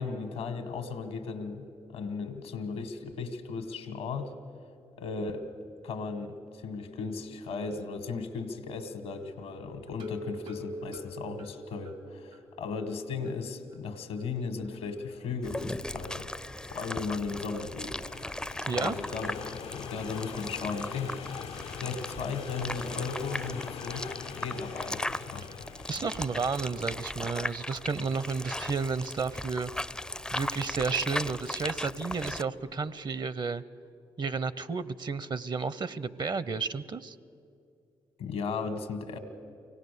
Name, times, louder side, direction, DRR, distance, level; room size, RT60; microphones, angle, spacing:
voice 1, 0.0-4.3 5.0-5.5 5.8-6.4 6.6-18.0 18.7-19.3 19.7-21.1 21.8-25.5 38.2-39.2, left 4 dB, 90° left, 8 dB, 1.5 m, -36 dB
sound 1, 9.9-12.5 12.8-12.9 13.2-13.3 13.7-13.8, left 1 dB, 80° right, 2.3 m, -42 dB
sound 2, 14.8-33.1, left 8 dB, 70° left, 0.5 m, -46 dB
sound 3, 15.4-32.4, left 1 dB, 5° left, 0.4 m, -38 dB
voice 2, 25.9-29.7 30.3-33.6 34.2-37.2, right 4 dB, 45° right, 17 dB, 0.7 m, -32 dB
24.0 x 17.5 x 6.8 m, 2.4 s
supercardioid pair, 50°, 11 cm